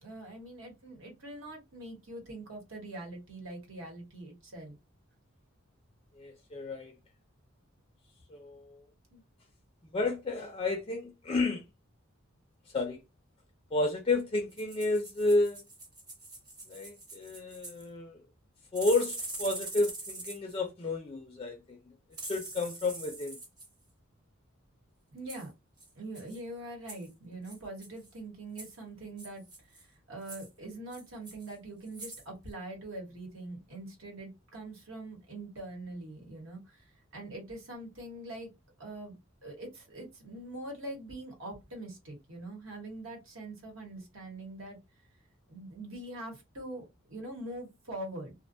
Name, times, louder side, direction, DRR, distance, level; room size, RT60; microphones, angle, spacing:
voice 1, 0.0-4.8 9.1-9.2 25.1-25.5 26.0-36.9 37.1-38.5 38.8-39.2 39.4-44.8 45.5-48.3, right 1 dB, 70° right, 1.1 m, -43 dB
voice 2, 6.2-6.9 8.3-8.8 9.9-11.6 12.7-13.0 13.7-15.6 16.7-18.2 18.7-21.8 22.3-23.4, left 2 dB, 25° left, 0.4 m, -31 dB
sound 1, 14.5-17.9 18.8-20.6 22.1-23.7 25.3-25.5 25.8-25.9 26.2-26.4 26.9-27.1 27.5-28.1 28.6-28.8 29.2-29.8 30.2-30.5 30.9-31.6 31.9-32.3 32.5-32.6, right 2 dB, 20° right, 0.6 m, -44 dB
2.4 x 2.2 x 2.5 m
head